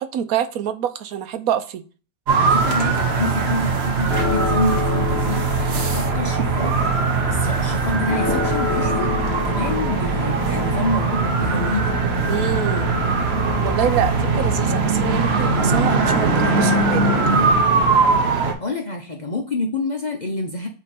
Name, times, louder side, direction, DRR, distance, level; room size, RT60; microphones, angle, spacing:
voice 1, 0.0-1.8 12.3-12.9 13.6-17.1, right 9 dB, 80° right, 10 dB, 1.1 m, -25 dB
sound 1, 2.3-18.5, right 4 dB, 50° right, 1.1 m, -20 dB
voice 2, 2.4-12.0 18.4-20.7, left 2 dB, 40° left, 1 dB, 0.7 m, -27 dB
sound 2, 3.0-16.5, left 3 dB, 15° left, 1.1 m, -33 dB
sound 3, 4.1-14.5, left 7 dB, 75° left, 1.2 m, -30 dB
7.9 x 3.0 x 4.2 m, 0.37 s
omnidirectional pair, 1.5 m